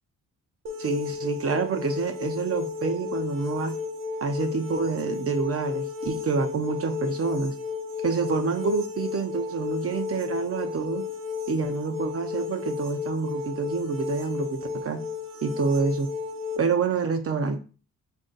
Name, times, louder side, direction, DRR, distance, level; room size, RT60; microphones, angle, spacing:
sound 1, 0.7-16.6, left 6 dB, 80° right, 0.8 m, -33 dB
voice 1, 0.8-3.7 4.2-7.6 8.0-11.0 11.5-15.0 15.4-16.1 16.6-17.6, right 5 dB, 45° right, 6 dB, 0.5 m, -27 dB
4.2 x 2.6 x 3.8 m, 0.36 s
wide cardioid pair, 125°, 32 cm